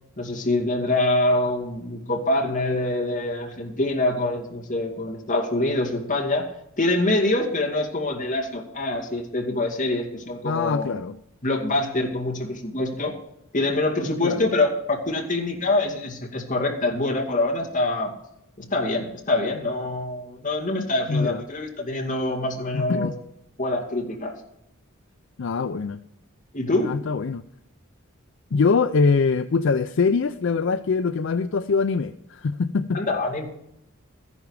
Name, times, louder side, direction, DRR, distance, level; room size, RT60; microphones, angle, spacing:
voice 1, 0.2-6.5 6.8-10.9 11.4-13.2 13.5-18.1 18.6-23.1 23.6-24.3 26.5-27.0 32.9-33.5, left 2 dB, 40° left, 1 dB, 2.3 m, -25 dB
voice 2, 10.4-11.2 14.2-14.5 21.1-21.4 22.7-23.1 25.4-26.0 26.8-27.4 28.5-33.0, left 4 dB, 60° left, 11 dB, 0.4 m, -23 dB
14.0 x 10.5 x 4.8 m, 0.78 s
head